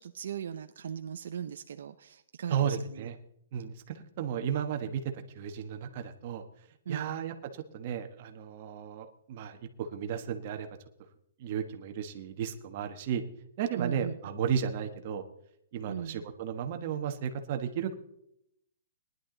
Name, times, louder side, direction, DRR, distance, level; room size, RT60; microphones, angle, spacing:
voice 1, 0.0-3.1 6.9-7.2 13.7-14.2 15.9-16.2, right 8 dB, 65° right, 8 dB, 0.7 m, -38 dB
voice 2, 2.5-3.1 3.5-6.4 6.9-7.3 7.7-10.7 11.4-13.2 13.6-15.2 15.7-18.0, right 8 dB, 35° right, 5 dB, 1.3 m, -34 dB
19.0 x 11.0 x 3.9 m, 0.75 s
hypercardioid pair, 170°, 0 cm